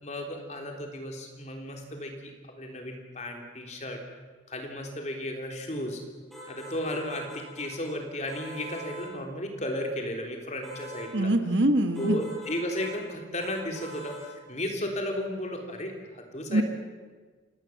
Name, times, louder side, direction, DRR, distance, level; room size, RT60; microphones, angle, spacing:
voice 1, 0.0-2.3 2.6-4.0 4.5-6.0 6.5-11.3 12.0-16.6, left 1 dB, 35° left, 3 dB, 3.6 m, -34 dB
sound 1, 6.3-7.9 8.3-9.1 10.6-11.1 12.0-13.0 13.4-14.3, equal, ahead, 7.1 m, -43 dB
voice 2, 11.1-12.2 16.5-16.6, right 1 dB, 70° right, 8 dB, 1.8 m, -23 dB
28.0 x 18.5 x 7.4 m, 1.4 s
head